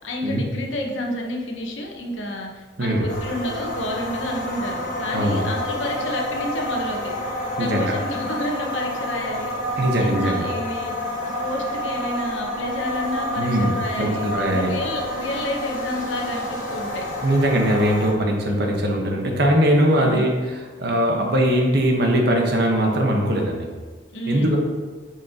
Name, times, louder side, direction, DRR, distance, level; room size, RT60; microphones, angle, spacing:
voice 1, 0.0-7.2 7.6-9.5 10.0-10.9 11.2-17.0 17.8-18.0 20.0-20.3 21.2-21.3 24.1-24.6, left 1 dB, 85° left, 0 dB, 1.1 m, -30 dB
sound 1, 3.1-18.1, equal, 45° left, 1.5 m, -29 dB
voice 2, 5.1-5.5 7.6-7.9 9.8-10.5 13.3-14.7 17.2-23.7 24.3-24.6, equal, 60° right, 1 dB, 1.2 m, -21 dB
7.1 x 6.2 x 2.9 m, 1.4 s
head